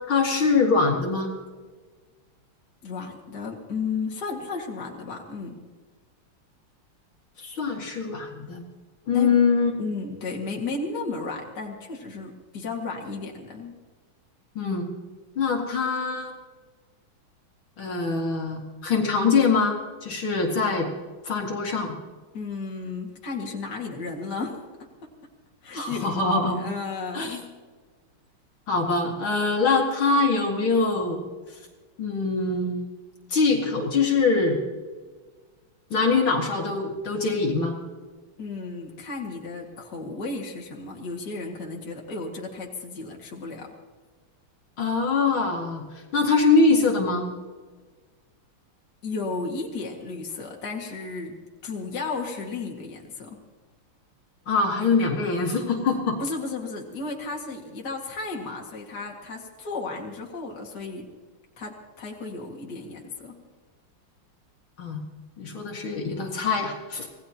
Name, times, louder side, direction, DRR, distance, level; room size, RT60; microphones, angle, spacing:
voice 1, 0.1-1.3 7.4-8.6 9.1-9.7 14.6-14.9 15.4-16.3 17.8-20.9 21.2-22.0 25.7-26.6 27.1-27.4 28.7-31.2 32.0-32.8 33.3-34.6 35.9-37.7 44.8-47.2 54.5-56.2 64.8-65.0 65.4-67.1, left 4 dB, 65° left, 0 dB, 2.8 m, -23 dB
voice 2, 2.8-5.6 9.1-9.5 9.8-13.7 22.3-24.6 25.6-26.1 26.6-27.5 38.4-43.7 49.0-51.3 51.6-53.4 56.2-61.1 61.6-63.3, left 4 dB, 50° left, 0 dB, 2.6 m, -33 dB
26.0 x 18.5 x 2.9 m, 1.4 s
omnidirectional pair, 2.4 m